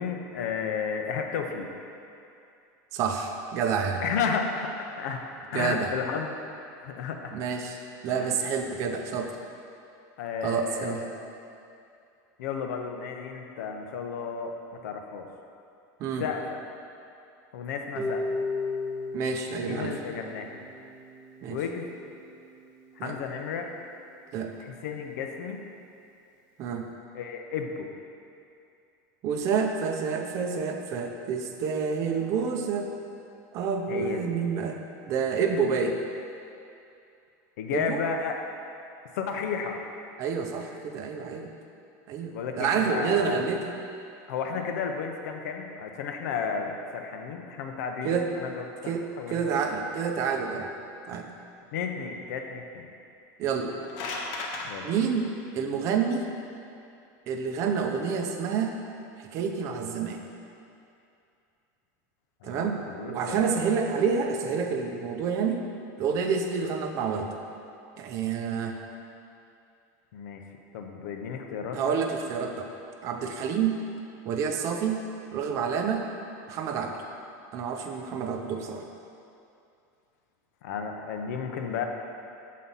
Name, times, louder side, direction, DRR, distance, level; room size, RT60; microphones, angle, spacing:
voice 1, 0.0-1.7 4.0-5.2 5.5-6.4 6.8-7.4 8.1-8.3 10.2-11.0 12.4-15.3 16.2-16.6 17.5-18.3 19.6-20.6 21.5-21.9 23.0-23.7 24.6-25.6 27.1-27.9 33.9-34.4 37.6-38.4 39.1-39.8 42.3-43.5 44.3-49.6 51.7-52.9 54.6-54.9 62.4-63.6 70.1-70.4 70.7-72.0 80.6-81.8, left 6 dB, 85° left, 3 dB, 0.7 m, -33 dB
voice 2, 2.9-4.0 5.5-5.9 7.3-7.8 8.0-9.4 10.4-11.0 16.0-16.3 19.1-19.9 21.4-21.6 23.0-23.2 24.3-24.5 26.6-26.9 29.2-32.9 33.5-34.8 35.1-36.0 37.7-38.0 40.2-41.5 42.1-43.8 48.0-48.3 48.9-50.7 51.1-51.3 53.4-53.8 54.8-56.3 57.3-58.7 59.2-60.2 62.4-62.8 63.1-65.7 66.0-67.3 68.0-68.8 71.7-72.7 73.0-73.8 74.2-75.0 75.3-76.1 76.5-77.0 77.5-78.8, right 6 dB, 35° right, 4 dB, 0.5 m, -28 dB
Harp, 18.0-24.0, left 2 dB, 15° right, 1.1 m, -36 dB
sound 1, 53.6-54.7, left 3 dB, 45° left, 0.8 m, -34 dB
7.5 x 4.1 x 5.5 m, 2.6 s
supercardioid pair, 170°, 9 cm